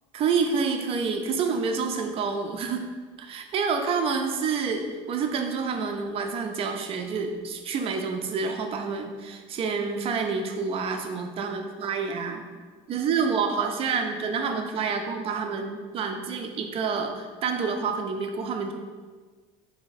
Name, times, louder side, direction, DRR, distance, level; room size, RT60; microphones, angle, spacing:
voice 1, 0.1-2.9 3.2-12.5 12.9-18.7, right 5 dB, 40° right, 5 dB, 0.5 m, -28 dB
4.3 x 2.8 x 4.0 m, 1.5 s
cardioid pair, 125°, 15 cm